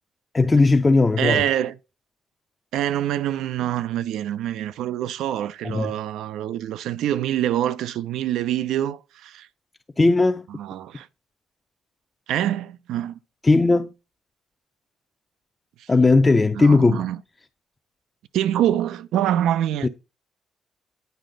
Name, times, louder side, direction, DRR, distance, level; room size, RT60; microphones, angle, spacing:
voice 1, 0.3-1.5 5.6-5.9 10.0-10.5 13.4-13.9 15.9-17.0 19.8-19.9, left 3 dB, 25° left, 0.5 m, -17 dB
voice 2, 1.2-1.7 2.7-9.5 10.5-11.1 12.3-13.2 15.8-15.9 16.5-17.2 18.3-19.9, right 11 dB, 85° right, 0.4 m, -25 dB
9.3 x 4.9 x 3.8 m
cardioid pair, 90°, 0 cm